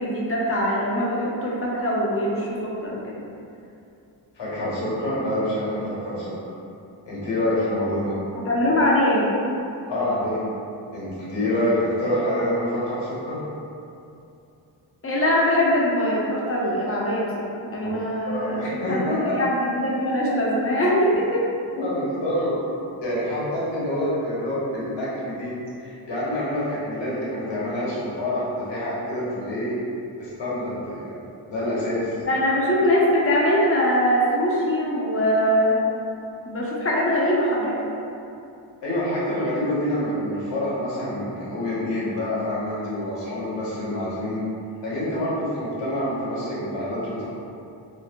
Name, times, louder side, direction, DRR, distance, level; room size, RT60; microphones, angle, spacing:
voice 1, 0.0-3.1 8.3-9.4 15.0-17.5 17.7-21.4 32.3-35.8 36.5-37.8, equal, 30° left, -5 dB, 0.7 m, -22 dB
voice 2, 4.3-6.3 7.1-8.2 9.9-10.4 10.9-13.4 17.8-18.0 18.3-19.4 21.7-22.6 23.0-25.5 25.8-29.8 30.2-31.2 31.5-32.1 38.8-44.4 44.8-47.2, left 1 dB, 60° left, -8 dB, 1.2 m, -27 dB
2.7 x 2.0 x 2.6 m, 2.6 s
supercardioid pair, 45°, 49 cm